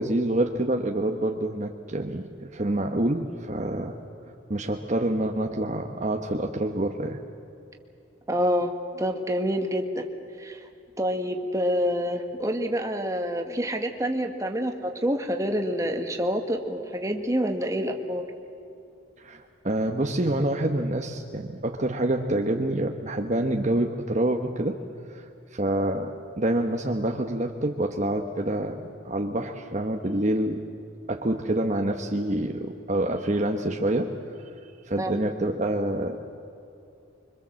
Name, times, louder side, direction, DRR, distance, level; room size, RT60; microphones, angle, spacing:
voice 1, 0.0-4.0 4.2-7.2 19.2-24.8 25.1-30.6 31.1-34.2 34.8-36.3, right 1 dB, 40° right, 3 dB, 1.1 m, -27 dB
voice 2, 8.3-10.1 10.4-10.6 11.0-18.2 35.0-35.1, equal, 15° right, 4 dB, 1.8 m, -27 dB
25.5 x 24.5 x 7.6 m, 2.7 s
head